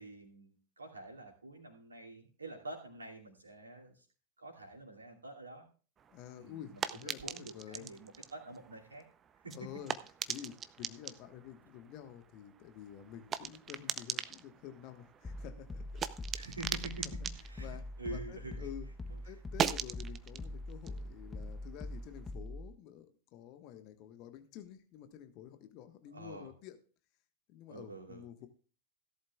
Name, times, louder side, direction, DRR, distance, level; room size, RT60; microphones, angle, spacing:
voice 1, 0.0-4.0 4.4-5.7 6.4-9.1 9.4-9.7 16.3-18.7 19.1-19.4 26.1-26.5 27.7-28.2, right 2 dB, 75° right, 0 dB, 2.6 m, -47 dB
sound 1, 6.0-18.8 19.0-22.3, right 8 dB, 25° right, 0.7 m, -42 dB
voice 2, 6.1-7.9 9.5-9.9 10.3-16.0 17.6-18.9 19.2-26.8 27.5-28.5, left 10 dB, 40° left, 8 dB, 1.4 m, -50 dB
sound 2, 15.2-22.7, left 1 dB, 15° left, 0.9 m, -43 dB
17.0 x 11.5 x 2.4 m, 0.39 s
figure-of-eight pair, 90°, 0 cm